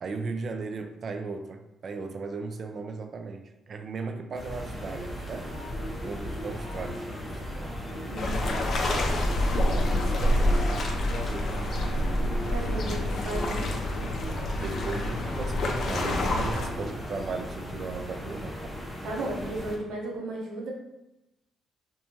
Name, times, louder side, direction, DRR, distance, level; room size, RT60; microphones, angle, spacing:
voice 1, 0.0-5.5 6.0-8.3 9.7-12.5 13.3-13.8 14.5-18.8, right 4 dB, 50° right, 7 dB, 0.3 m, -37 dB
sound 1, 4.3-19.8, left 1 dB, 5° left, 0.7 m, -38 dB
sound 2, 4.8-17.4, equal, 10° right, 1.1 m, -43 dB
voice 2, 8.1-8.4 12.3-13.6 19.0-20.7, right 2 dB, 75° right, -2 dB, 0.7 m, -34 dB
sound 3, 8.2-16.7, left 1 dB, 55° left, 0.4 m, -27 dB
2.7 x 2.2 x 2.9 m, 0.93 s
cardioid pair, 90°, 0 cm